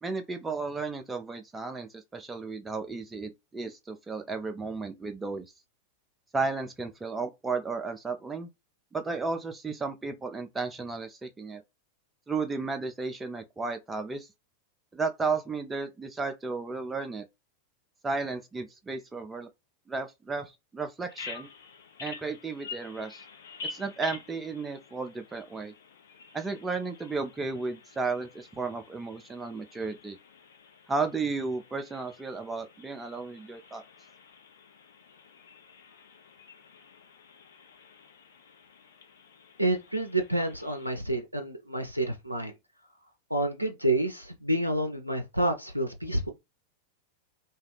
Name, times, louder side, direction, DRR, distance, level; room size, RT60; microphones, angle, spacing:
voice 1, 0.0-5.5 6.3-8.5 8.9-11.6 12.3-14.3 14.9-17.3 18.0-19.5 19.9-21.5 22.0-23.2 23.6-25.7 26.3-30.2 30.9-33.8, right 4 dB, 10° right, 0.3 m, -33 dB
Bird vocalization bird call bird song, 21.1-40.9, left 4 dB, 65° left, 0.8 m, -48 dB
voice 2, 39.6-42.5 43.3-46.3, right 1 dB, 85° right, 0.4 m, -29 dB
2.3 x 2.2 x 3.2 m
figure-of-eight pair, 90°, 0 cm